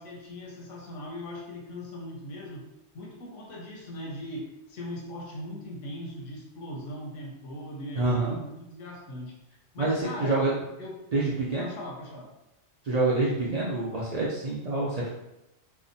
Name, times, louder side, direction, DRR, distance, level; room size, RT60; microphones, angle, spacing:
voice 1, 0.0-2.7 2.9-9.4 9.7-10.4 10.8-11.0 11.6-12.3, left 1 dB, 85° left, -1 dB, 1.0 m, -39 dB
voice 2, 8.0-8.4 9.8-10.5 11.1-11.6 12.8-15.1, right 2 dB, 75° right, -6 dB, 0.3 m, -26 dB
2.8 x 2.0 x 2.6 m, 0.91 s
omnidirectional pair, 1.2 m